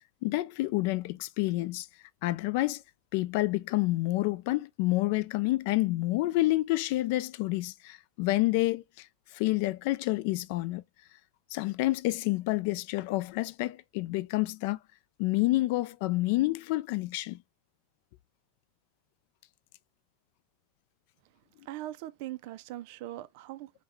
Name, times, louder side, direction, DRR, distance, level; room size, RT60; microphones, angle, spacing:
voice 1, 0.2-1.9 2.2-2.8 3.1-9.1 9.3-10.8 11.5-14.8 15.2-17.4, left 19 dB, 50° left, 0.4 m, -28 dB
voice 2, 21.6-23.7, right 15 dB, 50° right, 0.4 m, -40 dB
5.7 x 2.2 x 3.1 m
supercardioid pair, 170°, 0 cm